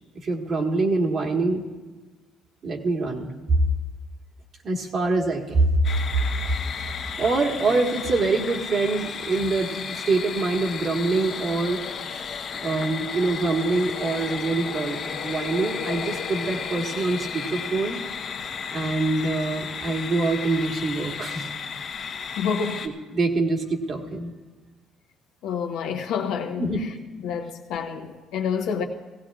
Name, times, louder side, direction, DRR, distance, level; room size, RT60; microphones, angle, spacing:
voice 1, 0.2-1.6 2.6-3.3 4.6-5.7 7.2-11.8 12.6-18.0 18.7-21.5 23.1-24.3 26.6-26.8, right 3 dB, 50° right, 1.6 m, -25 dB
sound 1, 5.8-22.9, left 6 dB, 55° left, 1.0 m, -33 dB
voice 2, 22.4-22.9 25.4-26.9 27.2-28.8, left 6 dB, 80° left, 1.0 m, -28 dB
17.5 x 16.0 x 2.5 m
cardioid pair, 90°, 0 cm